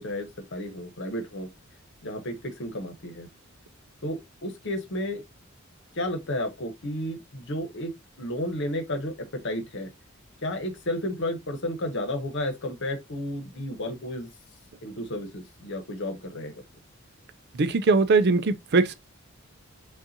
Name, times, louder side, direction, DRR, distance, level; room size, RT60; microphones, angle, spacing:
voice 1, 0.0-1.5 2.0-3.3 4.0-5.2 5.9-9.9 10.4-14.3 14.8-16.6, left 1 dB, 60° left, 1.1 m, -32 dB
voice 2, 17.6-19.0, right 3 dB, 50° right, 0.5 m, -21 dB
5.3 x 2.4 x 2.7 m
head